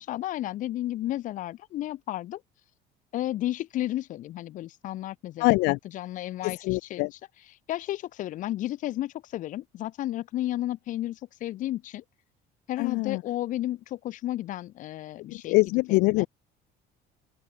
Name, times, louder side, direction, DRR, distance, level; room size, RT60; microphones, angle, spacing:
voice 1, 0.0-2.4 3.1-5.6 5.8-12.0 12.7-15.6 15.9-16.3, left 14 dB, 45° left, 2.5 m, -33 dB
voice 2, 5.4-5.8 6.4-7.1 12.8-13.2 15.5-16.3, left 24 dB, 80° left, 1.0 m, -23 dB
open air
cardioid pair, 180°, 18 cm